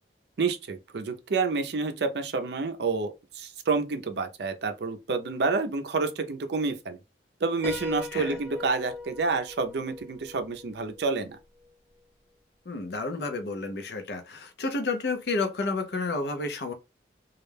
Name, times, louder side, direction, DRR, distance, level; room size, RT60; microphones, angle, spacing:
voice 1, 0.4-7.0 7.4-11.4, right 4 dB, 65° right, 0.5 m, -29 dB
Piano, 7.6-11.4, left 3 dB, 15° left, 0.5 m, -38 dB
voice 2, 12.7-16.7, left 3 dB, 60° left, 0.5 m, -31 dB
2.3 x 2.1 x 3.2 m
head